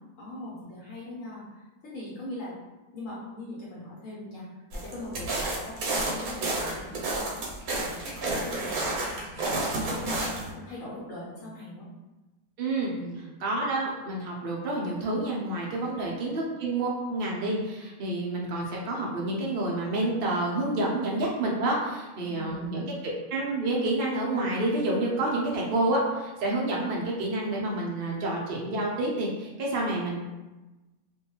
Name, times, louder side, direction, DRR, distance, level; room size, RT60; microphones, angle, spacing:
voice 1, 0.2-2.5 2.9-11.9 12.9-13.2 15.9-16.1 22.3-22.9 30.1-30.2, left 1 dB, 65° left, -7 dB, 1.0 m, -41 dB
sound 1, 4.7-10.5, right 2 dB, 80° right, 1.1 m, -30 dB
voice 2, 12.6-12.9 13.4-22.8 23.3-30.2, right 2 dB, 55° right, -3 dB, 0.6 m, -28 dB
2.5 x 2.2 x 2.9 m, 1.1 s
omnidirectional pair, 1.5 m